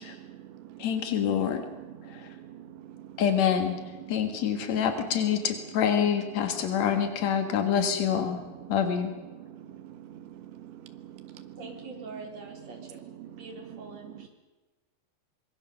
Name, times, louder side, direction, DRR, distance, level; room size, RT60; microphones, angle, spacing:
voice 1, 0.0-3.2 4.0-4.7 8.6-8.8 9.4-11.6 13.2-13.5 14.0-14.3, right 11 dB, 70° right, 8 dB, 3.5 m, -46 dB
voice 2, 0.8-1.6 2.1-2.3 3.2-3.8 4.1-8.4 8.7-9.1, left 8 dB, 75° left, 7 dB, 1.6 m, -26 dB
voice 3, 11.3-13.0 13.3-14.3, right 3 dB, 35° right, 1 dB, 4.5 m, -44 dB
25.5 x 22.0 x 7.0 m, 1.2 s
omnidirectional pair, 5.6 m